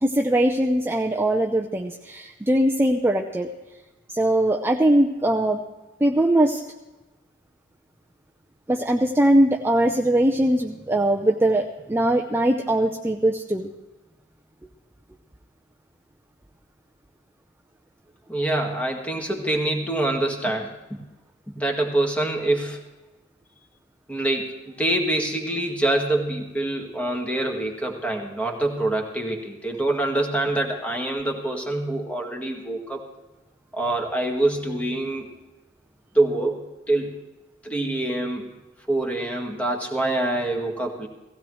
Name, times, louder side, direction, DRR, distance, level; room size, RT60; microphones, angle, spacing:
voice 1, 0.0-3.5 4.1-5.6 6.0-6.6 8.7-13.7, right 1 dB, 10° right, 1 dB, 0.6 m, -21 dB
voice 2, 18.3-21.0 21.5-22.8 24.1-33.1 33.7-35.3 36.1-37.2 37.6-38.6 38.9-41.1, right 1 dB, 5° left, 1 dB, 1.7 m, -25 dB
17.5 x 16.0 x 3.2 m, 1.1 s
head